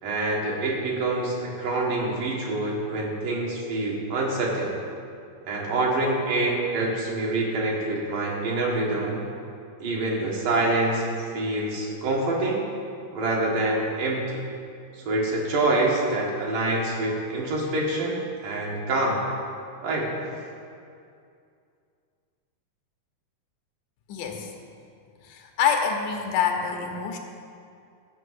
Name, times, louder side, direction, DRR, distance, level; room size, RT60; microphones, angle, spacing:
voice 1, 0.0-4.7 5.5-9.2 9.8-11.0 11.3-12.6 13.1-14.4 15.1-19.2 19.8-20.1, right 2 dB, 75° right, -3 dB, 3.5 m, -26 dB
voice 2, 24.1-24.5 25.2-27.2, left 7 dB, 75° left, 3 dB, 2.5 m, -26 dB
12.5 x 6.2 x 8.1 m, 2.4 s
omnidirectional pair, 3.9 m